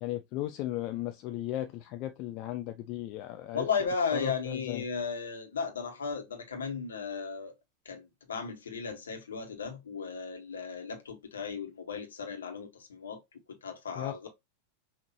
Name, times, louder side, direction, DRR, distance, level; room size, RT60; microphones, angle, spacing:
voice 1, 0.0-3.7 4.1-4.8 13.9-14.3, left 14 dB, 40° left, 0.5 m, -36 dB
voice 2, 3.5-7.5 7.8-13.2 13.6-14.3, left 5 dB, 70° left, 1.4 m, -35 dB
5.9 x 2.9 x 2.9 m
figure-of-eight pair, 90°, 0 cm